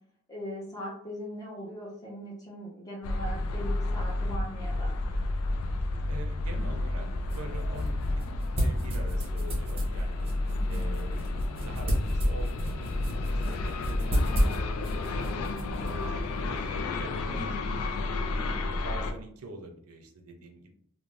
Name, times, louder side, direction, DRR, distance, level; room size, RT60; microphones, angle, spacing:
voice 1, 0.3-5.0 10.5-10.8, equal, 15° left, -3 dB, 0.8 m, -40 dB
sound 1, 3.0-19.1, left 2 dB, 75° left, 0.3 m, -31 dB
voice 2, 6.0-10.3 10.6-11.2 11.6-16.0 16.4-16.6 17.0-17.9 18.3-20.7, right 2 dB, 80° right, 4 dB, 0.5 m, -45 dB
sound 2, 6.8-16.7, equal, 25° right, 0.7 m, -34 dB
2.5 x 2.1 x 3.1 m, 0.65 s
head